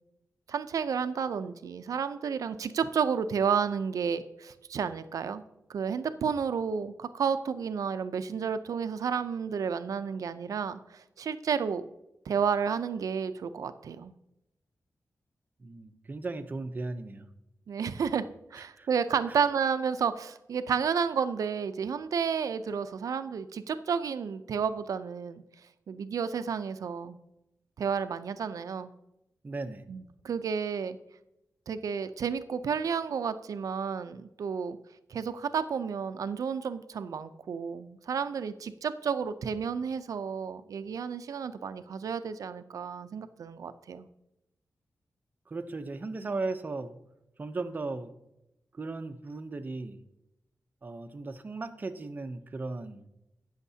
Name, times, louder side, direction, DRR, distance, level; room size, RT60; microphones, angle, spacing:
voice 1, 0.5-5.4 5.7-11.8 12.3-14.1 17.7-18.2 18.5-25.4 25.9-27.2 27.8-28.9 29.9-31.0 31.7-34.8 35.1-44.1, right 6 dB, 80° right, 11 dB, 0.5 m, -31 dB
voice 2, 15.6-17.3 18.5-18.9 19.3-19.4 29.4-29.8 45.5-47.0 47.4-48.1 48.7-50.0 50.8-53.0, right 3 dB, 30° right, 8 dB, 0.6 m, -37 dB
18.0 x 6.5 x 2.8 m, 0.87 s
wide cardioid pair, 160°, 6 cm